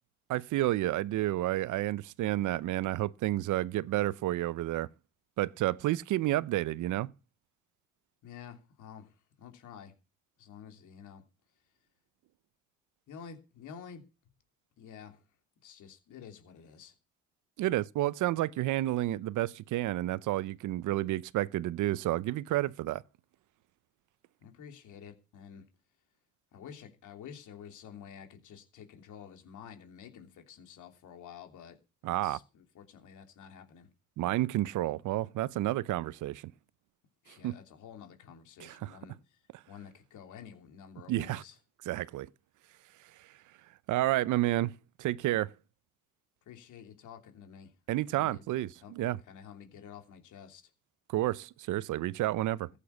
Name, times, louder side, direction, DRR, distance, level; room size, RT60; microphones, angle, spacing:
voice 1, 0.3-4.9 5.4-7.1 17.6-23.0 32.0-32.4 34.2-36.5 37.4-37.6 38.6-39.0 41.1-41.4 41.9-42.3 43.9-44.7 45.0-45.5 47.9-49.2 51.1-52.7, right 15 dB, 80° right, 0.7 m, -30 dB
voice 2, 8.2-9.1 9.4-9.9 10.4-11.2 13.1-14.0 14.8-15.2 15.6-16.9 24.4-25.6 26.5-31.8 32.0-33.9 37.2-39.1 39.7-41.5 46.5-47.7 48.1-48.4 48.8-48.9 49.3-50.6, left 7 dB, 80° left, 3.2 m, -50 dB
15.0 x 8.4 x 7.0 m
cardioid pair, 90°, 30 cm